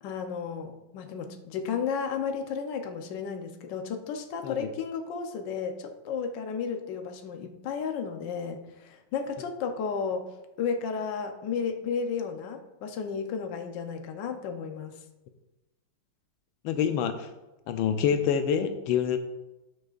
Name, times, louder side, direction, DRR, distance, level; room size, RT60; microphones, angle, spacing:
voice 1, 0.0-15.0, left 6 dB, 70° left, 5 dB, 1.4 m, -33 dB
voice 2, 16.6-17.3 17.7-19.2, left 8 dB, 90° left, 7 dB, 1.4 m, -26 dB
13.0 x 6.4 x 2.5 m, 1.0 s
omnidirectional pair, 2.1 m